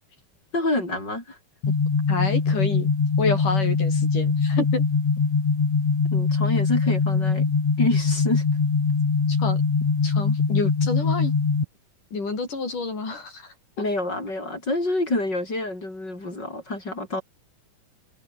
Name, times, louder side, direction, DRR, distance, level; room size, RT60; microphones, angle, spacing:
voice 1, 0.5-1.4 6.1-7.5 7.8-8.4 13.8-17.2, left 2 dB, 30° left, 8.1 m, -27 dB
sound 1, 1.6-11.6, left 5 dB, 55° left, 5.6 m, -22 dB
voice 2, 2.1-2.9 3.2-4.8 9.3-9.6 10.0-11.3 12.1-13.5, left 3 dB, 90° left, 9.1 m, -28 dB
omnidirectional pair, 3.5 m